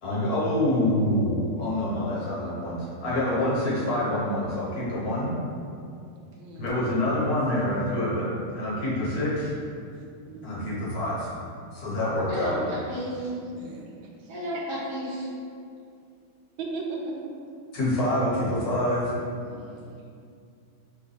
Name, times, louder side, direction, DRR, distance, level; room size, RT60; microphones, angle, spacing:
voice 1, 0.0-5.3 6.6-9.5 10.4-11.4 11.7-12.6 17.7-19.1, left 1 dB, 55° left, -7 dB, 1.2 m, -26 dB
voice 2, 6.4-6.7 7.5-7.6 10.3-10.5 13.3-13.9 14.5-14.6 16.6-17.3 18.7-18.8 19.4-19.7, right 3 dB, 75° right, -1 dB, 1.4 m, -37 dB
voice 3, 12.3-13.3 14.3-15.3, equal, 35° right, -8 dB, 1.0 m, -33 dB
5.7 x 2.2 x 4.0 m, 2.4 s
omnidirectional pair, 2.3 m